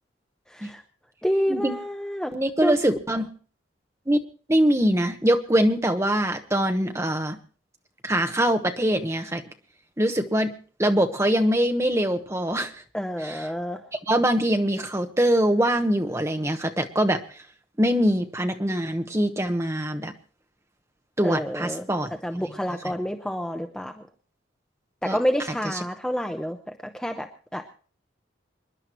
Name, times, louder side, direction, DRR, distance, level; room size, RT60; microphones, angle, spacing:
voice 1, 0.5-0.8 1.2-2.3 2.6-2.8 12.9-13.8 21.2-21.9 22.2-24.0 25.0-26.6 26.9-27.7, equal, 5° left, 5 dB, 0.7 m, -28 dB
voice 2, 2.3-3.3 4.1-4.2 4.5-7.4 8.0-9.4 10.0-10.5 10.8-12.8 13.2-13.5 14.1-17.4 17.8-20.1 21.2-22.1 25.0-25.2, right 1 dB, 15° right, 6 dB, 1.0 m, -23 dB
26.5 x 11.0 x 3.0 m, 0.41 s
head